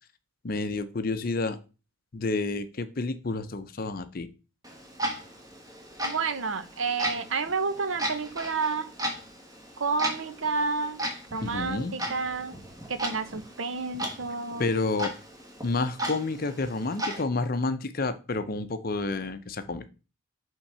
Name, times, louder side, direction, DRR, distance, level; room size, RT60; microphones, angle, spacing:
voice 1, 0.4-1.6 2.1-4.3 11.4-12.0 14.6-15.1 15.6-19.9, left 3 dB, 45° left, 11 dB, 0.6 m, -29 dB
Clock, 4.6-17.2, right 1 dB, 15° right, 1.3 m, -36 dB
voice 2, 6.0-8.9 9.8-11.0 11.3-12.6 12.9-14.7, right 4 dB, 70° right, 10 dB, 0.8 m, -30 dB
5.8 x 3.7 x 5.5 m, 0.32 s
head